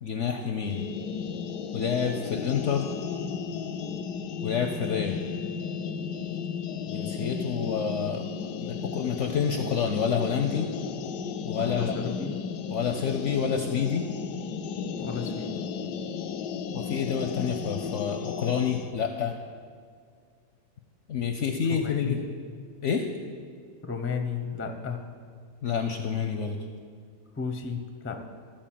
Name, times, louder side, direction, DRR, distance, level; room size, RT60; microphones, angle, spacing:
voice 1, 0.0-0.8 1.7-2.9 4.4-5.2 6.9-8.3 8.6-10.7 11.4-11.9 12.7-14.1 16.7-19.3 21.1-22.2 22.8-23.1 25.6-26.6, left 7 dB, 65° left, 5 dB, 0.8 m, -28 dB
sound 1, 0.6-18.9, left 6 dB, 90° left, 1.2 m, -34 dB
voice 2, 11.6-12.3 15.0-15.6 21.8-22.3 23.8-25.0 27.3-28.2, left 5 dB, 15° left, 4 dB, 0.4 m, -33 dB
13.0 x 4.5 x 7.5 m, 2.1 s
omnidirectional pair, 1.8 m